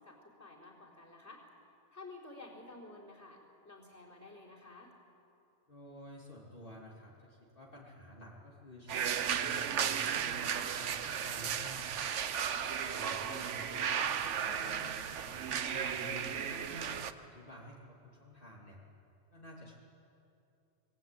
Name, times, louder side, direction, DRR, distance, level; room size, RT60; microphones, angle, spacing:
voice 1, 0.0-1.4 1.9-4.9, left 2 dB, 15° left, -3 dB, 4.3 m, -52 dB
voice 2, 5.7-12.1 12.8-18.8 19.3-19.8, left 1 dB, 45° left, -4 dB, 3.2 m, -51 dB
sound 1, 8.9-17.1, right 8 dB, 80° right, 1.2 m, -35 dB
26.0 x 20.0 x 9.0 m, 2.7 s
omnidirectional pair, 1.2 m